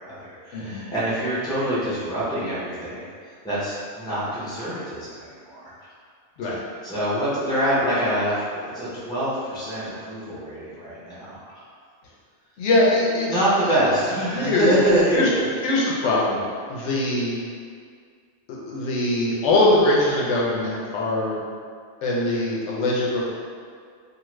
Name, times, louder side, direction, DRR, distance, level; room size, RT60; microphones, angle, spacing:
voice 1, 0.0-3.1 3.4-5.9 6.8-11.4 13.3-15.5, equal, 5° left, -10 dB, 0.5 m, -25 dB
voice 2, 0.5-0.8 6.4-6.6 12.6-13.4 13.6-13.7 14.3-14.7 15.1-15.3 15.6-17.4 18.5-21.4 22.0-23.3, left 2 dB, 80° left, -5 dB, 0.9 m, -22 dB
2.5 x 2.5 x 3.1 m, 2.1 s
omnidirectional pair, 1.2 m